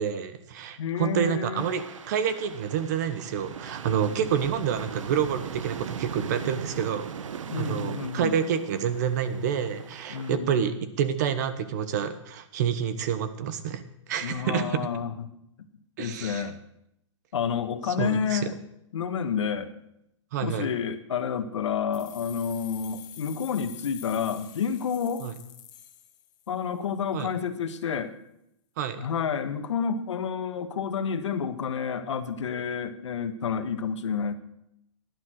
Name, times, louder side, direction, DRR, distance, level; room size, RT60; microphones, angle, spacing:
voice 1, 0.0-7.1 7.5-13.8 14.1-14.8 16.0-16.4 18.0-18.4 20.3-20.7 25.2-25.3 27.1-27.3 28.8-29.0, right 8 dB, 35° right, 11 dB, 1.1 m, -28 dB
voice 2, 0.8-1.7 7.5-8.3 10.1-10.7 14.2-15.3 16.0-16.6 17.3-18.6 18.9-19.7 20.4-25.3 26.5-28.1 29.0-34.3, left 7 dB, 65° left, 10 dB, 1.6 m, -29 dB
sound 1, 1.6-10.4, right 7 dB, 75° right, 1.2 m, -39 dB
sound 2, 21.9-26.7, left 11 dB, 40° left, 1.5 m, -47 dB
16.0 x 11.0 x 6.5 m, 0.81 s
hypercardioid pair, 170°, 16 cm